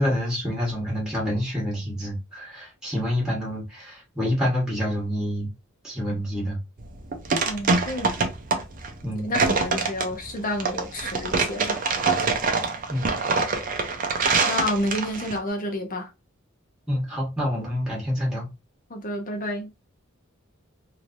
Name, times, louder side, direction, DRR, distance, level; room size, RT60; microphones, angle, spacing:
voice 1, 0.0-5.5 5.8-6.6 9.0-9.3 12.9-13.0 16.9-18.5, equal, 5° right, 1.3 m, -27 dB
sound 1, 6.8-15.4, right 4 dB, 40° right, 0.6 m, -25 dB
voice 2, 7.5-8.3 9.2-11.9 14.5-16.1 18.9-19.7, left 1 dB, 40° left, 0.9 m, -30 dB
3.1 x 2.7 x 2.6 m
head